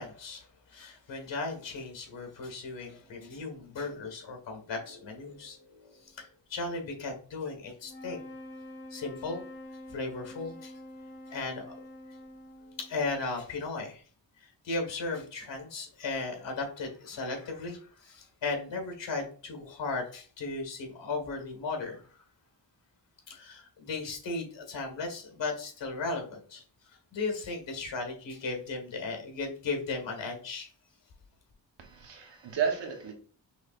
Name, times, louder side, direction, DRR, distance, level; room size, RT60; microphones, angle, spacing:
voice 1, 0.0-8.2 8.9-9.4 9.9-10.8 11.3-11.8 12.8-14.0 14.4-22.0 23.3-26.6 27.1-30.7, left 3 dB, 80° left, 3 dB, 1.8 m, -36 dB
sound 1, 7.8-13.3, left 1 dB, 55° left, 1.8 m, -46 dB
voice 2, 31.8-33.1, right 7 dB, 75° right, 3 dB, 1.3 m, -32 dB
6.2 x 3.3 x 2.5 m, 0.41 s
cardioid pair, 80°, 44 cm